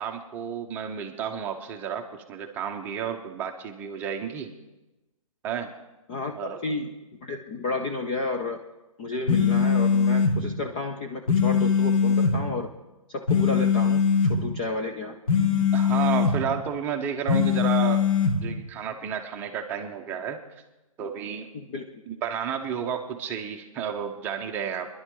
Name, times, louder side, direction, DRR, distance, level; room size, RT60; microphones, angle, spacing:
voice 1, 0.0-4.5 5.4-5.7 6.4-6.6 15.7-18.0 18.4-20.4 21.0-21.5 22.1-24.9, right 8 dB, 10° right, 3 dB, 0.8 m, -31 dB
voice 2, 6.1-6.9 7.2-8.6 9.0-12.7 13.1-14.0 14.3-15.2 21.5-22.0, left 3 dB, 15° left, 3 dB, 0.4 m, -31 dB
sound 1, 9.3-10.4 11.3-12.4 13.3-14.4 15.3-16.4 17.3-18.4, left 6 dB, 75° left, 2.5 m, -21 dB
22.5 x 11.0 x 3.8 m, 1.0 s
hypercardioid pair, 165°, 18 cm